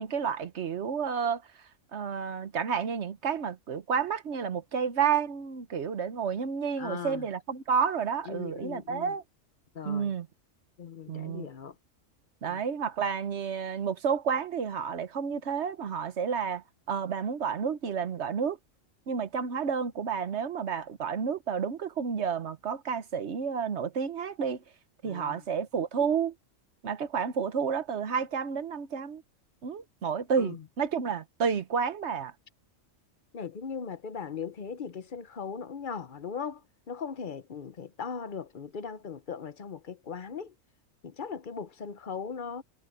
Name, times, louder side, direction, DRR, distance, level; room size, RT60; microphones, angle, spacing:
voice 1, 0.0-1.4 1.9-9.2 9.8-10.3 11.1-11.5 12.4-18.6 19.1-24.6 25.0-26.3 26.8-29.2 29.6-32.3, right 6 dB, 60° right, 1.2 m, -30 dB
voice 2, 6.8-7.3 8.3-9.1 9.7-10.1 10.8-11.7 12.5-12.6 25.0-25.4 30.4-30.6 33.3-36.6 36.9-40.5 41.0-42.6, left 6 dB, 45° left, 0.9 m, -38 dB
omnidirectional pair, 1.4 m